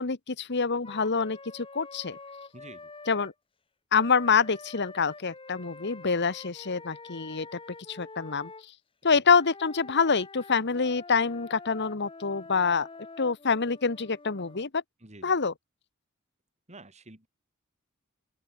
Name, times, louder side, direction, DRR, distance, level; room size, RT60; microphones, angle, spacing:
voice 1, 0.0-2.2 3.1-3.3 3.9-7.6 7.9-8.5 9.0-12.9 13.2-14.8 15.2-15.5, left 5 dB, 55° left, 1.3 m, -26 dB
Wind instrument woodwind instrument, 0.8-3.3 4.0-8.7 9.3-14.7, left 3 dB, 25° left, 1.6 m, -47 dB
voice 2, 2.5-2.9 9.1-9.2 15.0-15.3 16.7-17.3, right 2 dB, 30° right, 4.1 m, -49 dB
open air
head